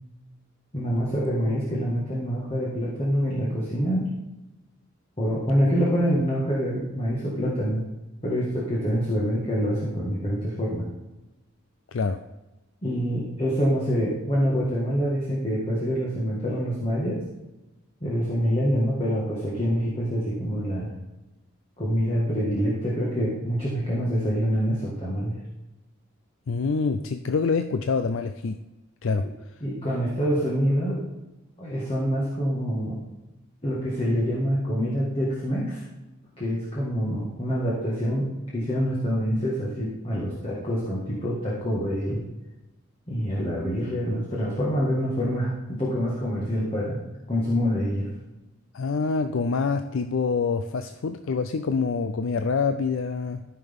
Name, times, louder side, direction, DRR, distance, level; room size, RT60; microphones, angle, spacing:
voice 1, 0.7-4.1 5.2-7.8 8.2-10.8 12.8-17.2 18.0-20.9 21.8-25.3 29.6-31.0 31.6-33.0 33.6-35.8 36.4-42.2 43.1-47.0 47.3-48.1, equal, 30° left, -6 dB, 1.8 m, -26 dB
voice 2, 11.9-12.2 26.5-28.6 29.0-29.3 48.7-53.4, left 4 dB, 70° left, 8 dB, 0.4 m, -26 dB
13.5 x 6.0 x 3.6 m, 1.0 s
head